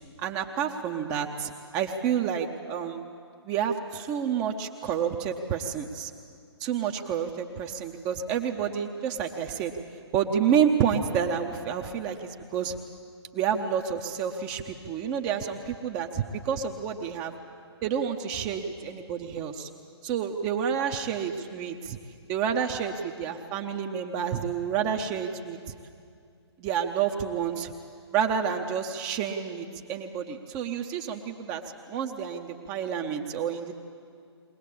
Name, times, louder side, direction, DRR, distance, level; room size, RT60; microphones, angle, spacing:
voice 1, 0.2-3.0 3.4-6.1 6.6-9.7 10.1-12.8 13.3-17.3 17.8-19.7 20.0-22.0 22.3-25.6 26.6-27.7 28.1-31.6 31.9-33.7, right 8 dB, 20° right, 4 dB, 0.9 m, -29 dB
22.5 x 18.0 x 8.5 m, 2.4 s
figure-of-eight pair, 135°, 14 cm